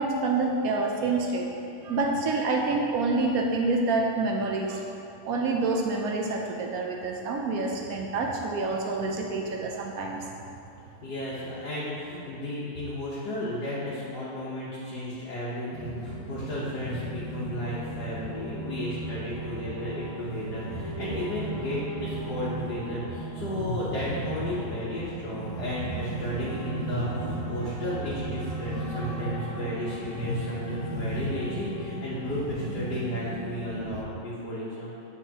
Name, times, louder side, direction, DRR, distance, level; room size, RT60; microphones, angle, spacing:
voice 1, 0.0-1.5 1.8-4.9 5.3-10.3, right 3 dB, 70° right, 1 dB, 0.9 m, -27 dB
voice 2, 11.0-34.9, left 1 dB, 70° left, -9 dB, 1.6 m, -34 dB
sound 1, 15.7-34.0, right 2 dB, 5° left, 1.0 m, -35 dB
8.7 x 4.5 x 2.8 m, 2.7 s
omnidirectional pair, 1.9 m